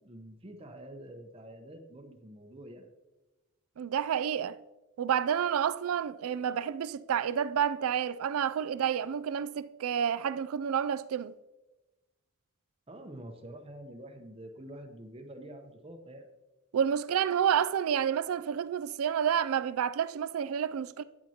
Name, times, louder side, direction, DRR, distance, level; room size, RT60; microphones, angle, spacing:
voice 1, 0.0-2.9 12.9-16.3, right 1 dB, 25° right, 0.7 m, -47 dB
voice 2, 3.8-4.6 5.0-11.3 16.7-21.0, right 8 dB, 85° right, 0.4 m, -29 dB
9.8 x 9.0 x 2.9 m
head